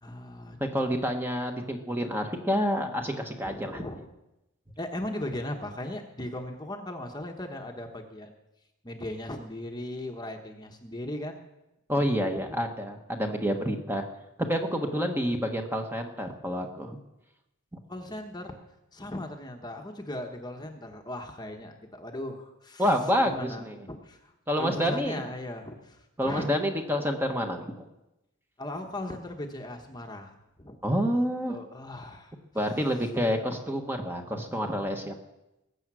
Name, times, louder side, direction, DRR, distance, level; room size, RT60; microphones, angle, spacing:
voice 1, 0.0-0.6 3.4-4.1 4.8-8.3 8.8-11.4 12.3-12.6 17.9-18.5 18.9-22.9 23.2-26.5 28.6-30.8 31.5-32.3 34.1-34.2, left 1 dB, 20° left, 4 dB, 1.1 m, -38 dB
voice 2, 0.7-3.8 11.9-14.0 14.5-17.0 22.8-23.8 24.5-25.2 26.2-27.7 30.8-31.6 32.5-35.2, equal, 10° right, 4 dB, 1.2 m, -28 dB
20.5 x 7.9 x 6.2 m, 0.94 s
head